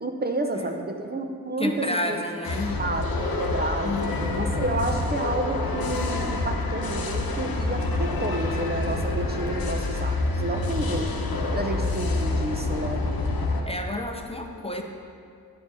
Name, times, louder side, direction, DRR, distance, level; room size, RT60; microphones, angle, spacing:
voice 1, 0.0-2.2 2.8-3.9 4.3-11.1 11.5-13.0, right 2 dB, 30° right, 4 dB, 0.7 m, -30 dB
voice 2, 0.5-0.9 1.6-2.8 3.8-4.5 13.6-14.8, left 1 dB, 15° left, 3 dB, 0.7 m, -31 dB
sound 1, 2.4-13.6, left 2 dB, 85° left, 1.1 m, -27 dB
10.5 x 5.2 x 6.9 m, 2.4 s
wide cardioid pair, 100°, 35 cm